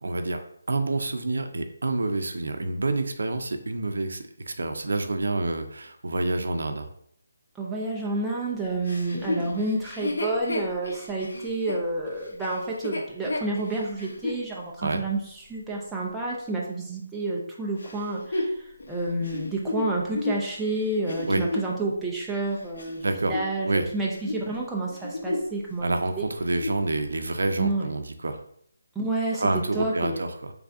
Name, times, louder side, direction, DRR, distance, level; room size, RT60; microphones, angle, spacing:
voice 1, 0.0-0.4 0.7-6.9 14.8-15.0 21.3-21.4 23.0-23.4 23.6-23.9 25.8-28.4 29.4-30.5, right 2 dB, 75° right, 7 dB, 0.5 m, -28 dB
voice 2, 7.6-18.5 18.9-26.2 27.6-27.9 29.0-30.2, right 2 dB, 5° right, -5 dB, 0.3 m, -29 dB
Chuckle chortle, 8.8-14.4 15.0-15.1 17.8-21.8 22.4-23.9 24.1-24.4 24.9-25.6 25.9-26.0 26.4-26.9 27.5-27.6, left 2 dB, 65° left, 0.8 m, -32 dB
3.2 x 2.4 x 3.6 m, 0.66 s
hypercardioid pair, 175°, 0 cm